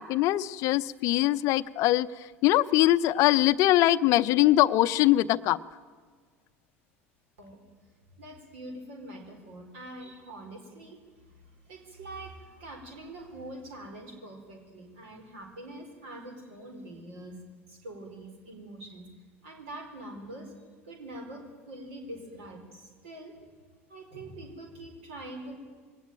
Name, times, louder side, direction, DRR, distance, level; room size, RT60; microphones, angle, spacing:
voice 1, 0.0-2.1 2.4-5.6, left 15 dB, 45° left, 15 dB, 0.7 m, -22 dB
voice 2, 8.2-19.1 19.4-20.5 20.8-23.4 23.9-25.6, right 1 dB, 60° right, 4 dB, 4.2 m, -44 dB
21.5 x 18.5 x 9.0 m, 1.5 s
figure-of-eight pair, 70°, 7 cm